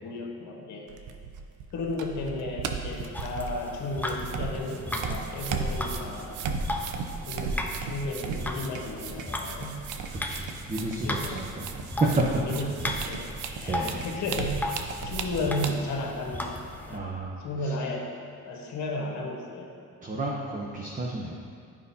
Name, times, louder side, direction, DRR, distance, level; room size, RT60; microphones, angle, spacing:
voice 1, 0.0-0.9 1.7-6.4 7.3-9.8 11.0-11.5 12.4-13.3 13.6-16.6 16.9-17.2 17.4-18.1 18.4-19.7, left 2 dB, 70° left, -1 dB, 1.3 m, -34 dB
sound 1, 0.9-15.7, right 5 dB, 80° right, 0.6 m, -36 dB
sound 2, 3.1-17.0, left 1 dB, 5° left, 0.5 m, -37 dB
voice 2, 10.1-11.7 12.0-12.2 13.7-14.0 16.9-17.7 20.0-21.3, right 2 dB, 25° right, -3 dB, 0.9 m, -31 dB
10.0 x 5.1 x 2.8 m, 2.4 s
cardioid pair, 90°, 30 cm